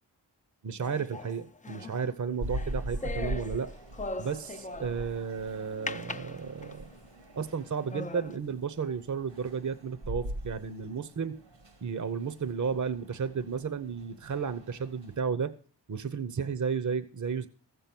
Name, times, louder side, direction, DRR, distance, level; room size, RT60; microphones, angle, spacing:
voice 1, 0.6-3.7 4.2-6.9 7.4-11.4 11.8-15.5 15.9-17.5, right 6 dB, 45° right, 12 dB, 0.8 m, -33 dB
sound 1, 0.8-5.2 5.9-7.0 7.5-7.6 7.9-8.4, left 3 dB, 20° left, 0.5 m, -40 dB
sound 2, 2.4-15.2, right 1 dB, 85° right, 1.9 m, -42 dB
14.5 x 7.1 x 6.0 m, 0.42 s
cardioid pair, 40°, 43 cm